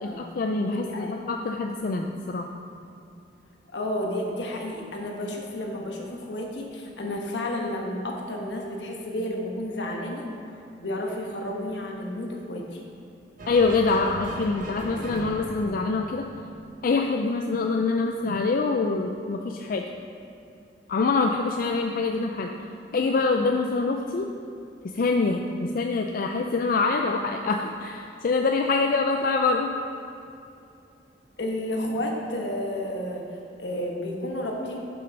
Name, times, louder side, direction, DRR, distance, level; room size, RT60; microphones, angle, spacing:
voice 1, 0.0-2.5 13.5-16.2 16.8-19.8 20.9-22.5 22.9-24.3 24.9-29.7, left 3 dB, 55° left, 3 dB, 0.4 m, -25 dB
voice 2, 0.6-1.2 3.7-10.3 10.8-12.8 31.4-34.8, left 1 dB, 80° left, 0 dB, 1.2 m, -31 dB
sound 1, 13.4-16.9, right 1 dB, 50° right, 1.0 m, -39 dB
7.0 x 6.3 x 5.2 m, 2.6 s
head